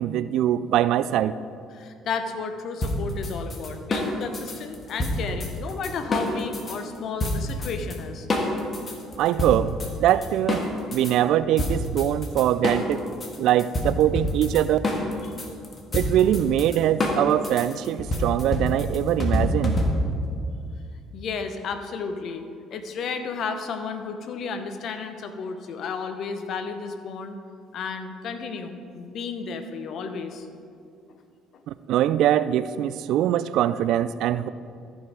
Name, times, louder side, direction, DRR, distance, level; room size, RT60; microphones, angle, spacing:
voice 1, 0.0-1.3 9.2-9.7 10.0-10.6 10.9-13.0 13.4-14.8 15.9-19.8 31.7-34.5, right 11 dB, 65° right, 15 dB, 0.3 m, -22 dB
voice 2, 1.7-8.5 15.2-15.3 21.1-22.4 22.7-27.4 27.7-30.5 31.1-31.2 31.5-31.6, left 5 dB, 60° left, 8 dB, 0.9 m, -33 dB
sound 1, 2.8-6.8 7.2-8.0 8.3-11.1 11.6-20.2, left 1 dB, 35° left, 1.7 m, -27 dB
14.0 x 5.5 x 5.0 m, 2.3 s
hypercardioid pair, 60°, 0 cm